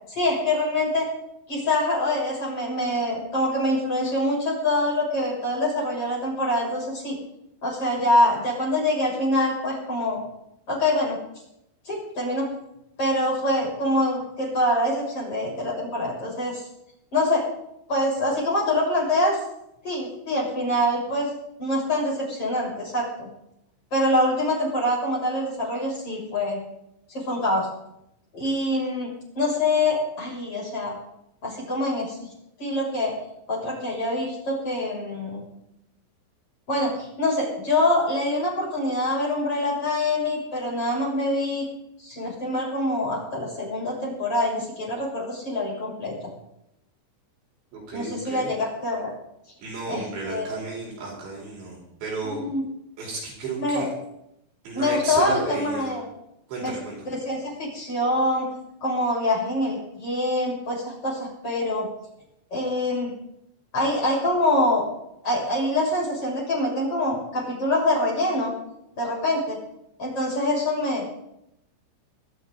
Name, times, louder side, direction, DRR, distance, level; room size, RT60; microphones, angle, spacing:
voice 1, 0.1-1.1 1.5-7.2 7.6-10.2 10.7-11.2 11.9-12.5 13.0-16.7 17.1-17.5 17.9-19.4 19.8-21.3 21.6-23.3 23.9-26.6 27.1-27.7 28.3-29.1 29.4-30.9 31.4-32.2 32.6-33.2 33.5-35.4 36.7-41.6 42.0-46.1 47.9-49.1 49.9-50.6 52.2-52.6 53.6-53.9 54.7-56.1 56.6-56.8 57.1-58.5 58.8-61.9 62.5-63.1 63.7-64.8 65.2-68.5 69.0-69.6 70.0-71.1, left 1 dB, 25° left, -4 dB, 7.5 m, -25 dB
voice 2, 47.7-48.5 49.6-52.4 53.0-53.9 54.6-55.9 56.5-57.0, right 3 dB, 60° right, -2 dB, 6.3 m, -33 dB
24.5 x 13.0 x 4.0 m, 0.81 s
omnidirectional pair, 6.0 m